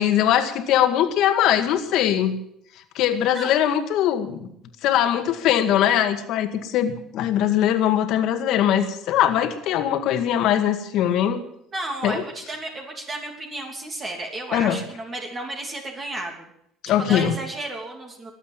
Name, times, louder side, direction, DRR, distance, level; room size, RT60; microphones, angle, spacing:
voice 1, 0.0-2.4 3.0-4.5 4.8-11.4 12.0-12.2 14.5-14.8 16.8-17.3, left 10 dB, 65° left, 8 dB, 2.0 m, -21 dB
voice 2, 11.7-16.5 17.1-18.3, right 2 dB, 25° right, 2 dB, 3.1 m, -33 dB
23.0 x 8.3 x 7.5 m, 0.74 s
cardioid pair, 125°, 0 cm